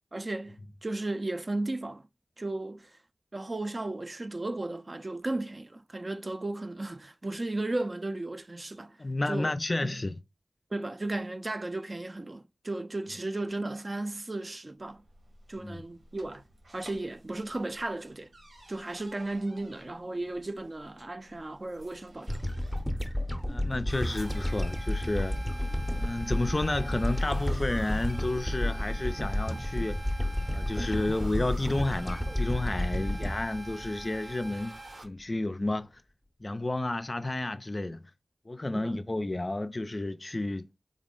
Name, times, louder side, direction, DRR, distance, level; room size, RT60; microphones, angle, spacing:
voice 1, 0.1-2.0 2.4-2.9 3.3-9.0 9.3-9.5 9.9-10.0 10.7-15.0 15.5-16.4 16.7-18.3 18.7-22.4 38.7-38.9, right 2 dB, 45° right, 0.4 m, -35 dB
voice 2, 9.0-10.1 15.6-15.8 23.5-25.4 25.9-30.1 30.5-36.0 36.4-38.0 38.5-40.8, left 2 dB, 40° left, 0.3 m, -31 dB
sound 1, 14.8-29.9, left 1 dB, 90° right, 1.3 m, -51 dB
sound 2, 22.3-34.8, left 1 dB, ahead, 0.6 m, -31 dB
sound 3, 23.9-35.0, right 2 dB, 65° right, 0.8 m, -46 dB
3.6 x 2.0 x 3.7 m
cardioid pair, 50°, 0 cm